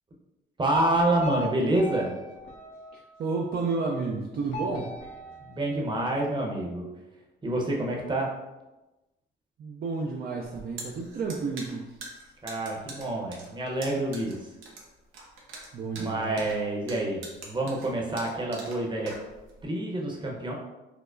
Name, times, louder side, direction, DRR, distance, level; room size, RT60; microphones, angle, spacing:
voice 1, 0.6-2.2 5.4-6.9 7.4-8.3 12.4-14.4 15.9-19.1 19.6-20.5, right 1 dB, 25° right, -1 dB, 0.8 m, -28 dB
sound 1, 0.7-3.4 4.5-6.3, equal, 85° left, 0.7 m, -39 dB
voice 2, 2.9-4.9 9.6-11.9 15.7-16.5, right 4 dB, 50° right, -1 dB, 0.4 m, -31 dB
sound 2, 10.4-19.6, right 3 dB, 85° right, 0.7 m, -44 dB
4.6 x 2.0 x 2.5 m, 1.0 s
cardioid pair, 90°, 20 cm